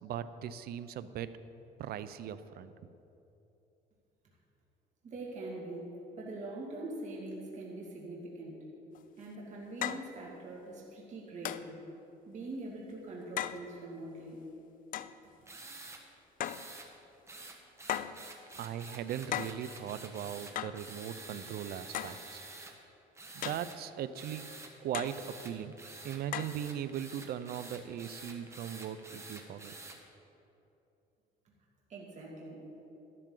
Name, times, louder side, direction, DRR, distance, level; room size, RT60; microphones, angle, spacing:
voice 1, 0.0-1.3 1.8-2.7 18.6-22.4 23.3-24.4 24.8-25.8 26.0-29.7, right 10 dB, 65° right, 13 dB, 0.6 m, -39 dB
voice 2, 5.0-8.7 9.2-11.8 12.3-14.5 31.9-32.8, right 2 dB, 45° right, -3 dB, 2.2 m, -43 dB
sound 1, 9.0-9.1 9.8-10.1 11.5-11.7 13.4-13.6 14.9-15.2 16.4-16.7 17.9-18.2 19.3-19.6 20.6-20.8 21.9-22.2 23.4-23.7 24.9-25.2 26.3-26.6, left 11 dB, 55° left, 0.4 m, -36 dB
sound 2, 15.5-16.0 16.4-16.9 17.3-22.7 23.1-23.8 24.1-24.7 25.0-30.0, right 2 dB, 15° right, 1.3 m, -48 dB
12.5 x 12.0 x 3.8 m, 3.0 s
cardioid pair, 110°, 17 cm